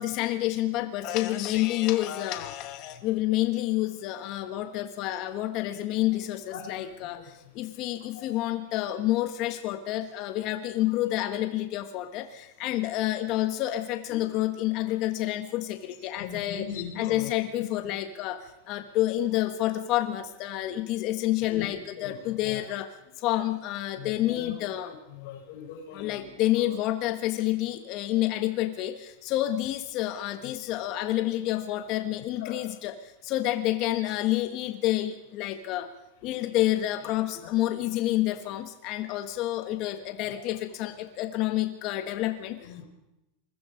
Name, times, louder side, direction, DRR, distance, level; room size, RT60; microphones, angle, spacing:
voice 1, 0.0-16.7 17.0-22.9 23.2-24.9 25.9-35.9 36.2-42.7, left 14 dB, 45° left, 8 dB, 1.5 m, -29 dB
voice 2, 6.5-7.3 7.5-7.6 8.1-8.5 13.5-13.6 16.1-17.3 17.6-17.7 21.5-21.7 22.0-22.6 23.9-26.8 30.4-30.5 31.4-31.5 32.2-32.7 37.3-37.5 39.6-39.7 40.3-40.4 42.6-42.9, left 7 dB, 70° left, 2 dB, 7.4 m, -41 dB
27.5 x 21.5 x 5.2 m, 0.94 s
supercardioid pair, 145°, 0 cm